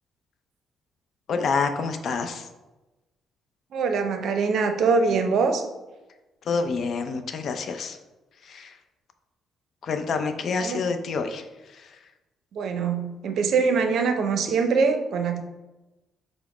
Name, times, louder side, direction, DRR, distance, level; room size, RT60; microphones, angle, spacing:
voice 1, 1.3-2.5 6.5-8.0 8.4-8.7 9.8-11.4 11.7-12.0, left 4 dB, 60° left, 7 dB, 0.4 m, -27 dB
voice 2, 3.7-5.6 10.6-10.8 12.5-15.4, right 5 dB, 70° right, 6 dB, 0.5 m, -23 dB
5.0 x 2.0 x 4.7 m, 1.1 s
cardioid pair, 90°, 0 cm